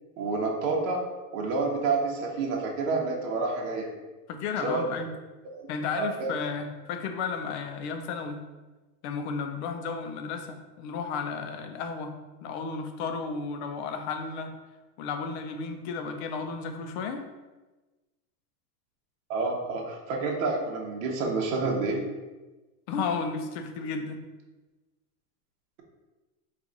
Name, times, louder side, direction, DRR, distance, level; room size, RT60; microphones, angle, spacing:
voice 1, 0.2-1.0 1.3-3.9 4.6-4.9 5.5-5.7 6.0-6.3 19.3-22.0, right 3 dB, 60° right, -1 dB, 1.0 m, -28 dB
voice 2, 4.3-5.1 5.7-8.4 9.0-12.1 12.4-14.5 15.0-17.2 22.9-24.2, left 5 dB, 45° left, 6 dB, 0.6 m, -33 dB
4.5 x 2.5 x 3.9 m, 1.2 s
supercardioid pair, 150°, 45 cm